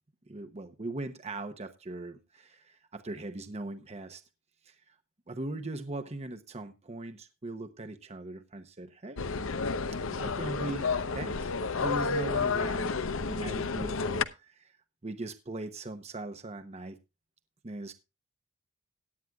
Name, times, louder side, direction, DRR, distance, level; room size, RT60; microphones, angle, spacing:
voice 1, 0.3-4.2 4.6-5.0 5.3-9.2 10.0-14.8 15.0-17.0 17.6-17.9, right 2 dB, 30° right, 8 dB, 0.9 m, -40 dB
sound 1, 9.2-14.2, left 4 dB, 65° left, 0.8 m, -31 dB
17.5 x 10.5 x 2.3 m, 0.25 s
head